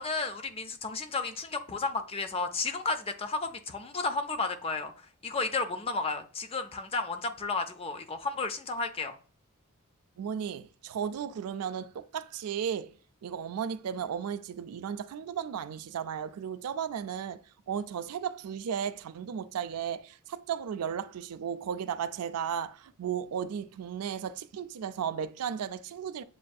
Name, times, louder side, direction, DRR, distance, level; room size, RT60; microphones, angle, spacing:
voice 1, 0.0-4.9 5.2-9.1, left 3 dB, 25° left, 0.4 m, -32 dB
voice 2, 10.2-12.9 13.2-17.4 17.7-26.2, right 8 dB, 85° right, 0.4 m, -35 dB
7.3 x 2.6 x 2.3 m
head